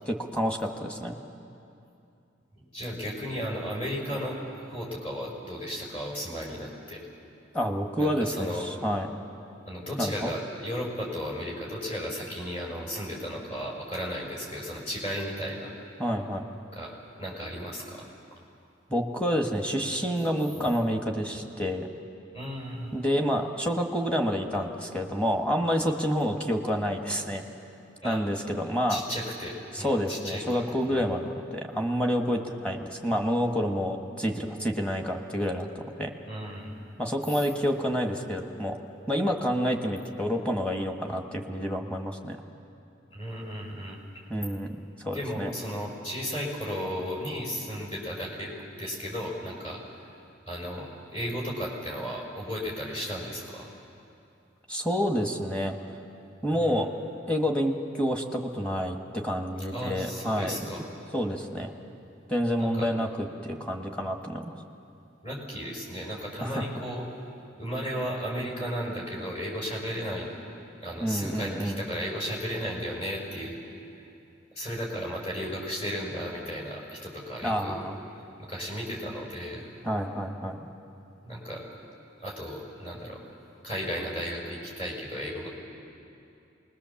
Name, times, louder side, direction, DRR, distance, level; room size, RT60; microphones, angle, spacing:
voice 1, 0.1-1.2 7.5-9.1 10.0-10.3 16.0-16.4 18.9-21.9 22.9-27.4 28.0-29.0 29.7-36.1 37.0-38.8 39.1-42.4 44.3-45.5 54.7-55.7 56.4-56.9 57.3-60.5 61.1-61.7 62.3-64.5 66.4-66.6 71.0-71.8 77.4-78.0 79.8-80.7, equal, 5° left, 2 dB, 1.4 m, -28 dB
voice 2, 2.6-7.0 8.0-8.6 9.7-15.7 16.6-18.1 22.3-22.9 28.0-28.2 28.9-31.0 36.2-36.7 37.3-37.4 43.1-44.0 45.1-49.8 50.5-53.7 56.5-56.8 59.7-60.9 62.6-62.9 65.2-67.1 67.6-70.3 70.8-73.6 74.5-77.8 78.4-79.7 81.2-81.6 82.2-83.2 83.6-85.5, equal, 35° left, -2 dB, 5.6 m, -34 dB
26.5 x 21.0 x 7.2 m, 2.7 s
head